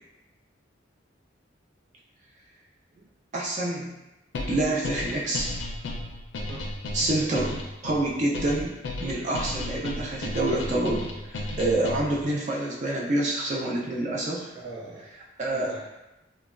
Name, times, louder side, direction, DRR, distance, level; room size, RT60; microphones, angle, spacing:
voice 1, 3.3-3.9 4.5-5.5 6.9-7.5 7.8-8.8 9.0-14.5 15.4-15.7, right 1 dB, 40° right, -4 dB, 0.3 m, -27 dB
sound 1, 4.3-12.3, left 1 dB, 75° left, 0.4 m, -34 dB
voice 2, 6.5-7.3 9.1-9.3 14.5-15.1 15.5-15.9, right 3 dB, 75° right, -7 dB, 0.7 m, -43 dB
3.1 x 2.2 x 2.4 m, 0.97 s
head